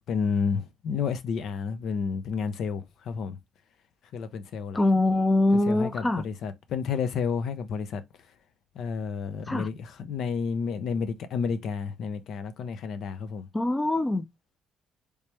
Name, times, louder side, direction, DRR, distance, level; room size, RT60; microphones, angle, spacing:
voice 1, 0.1-3.4 4.1-4.8 5.7-8.0 8.7-13.5, left 6 dB, 75° left, 0.6 m, -30 dB
voice 2, 4.7-6.2 9.5-9.7 13.5-14.3, left 2 dB, 20° left, 0.5 m, -23 dB
3.3 x 3.2 x 2.9 m
cardioid pair, 90°, 0 cm